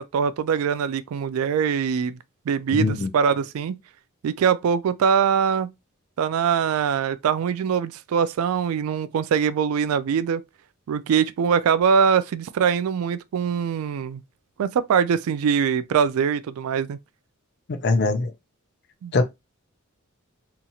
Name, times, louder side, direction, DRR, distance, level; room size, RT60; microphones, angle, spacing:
voice 1, 0.0-2.2 2.5-3.8 4.2-5.7 6.2-10.4 10.9-14.2 14.6-17.0 19.0-19.1, right 7 dB, 80° right, 0.3 m, -22 dB
voice 2, 2.7-3.1 17.7-18.3 19.1-19.2, left 3 dB, 50° left, 0.5 m, -22 dB
2.9 x 2.4 x 2.6 m
head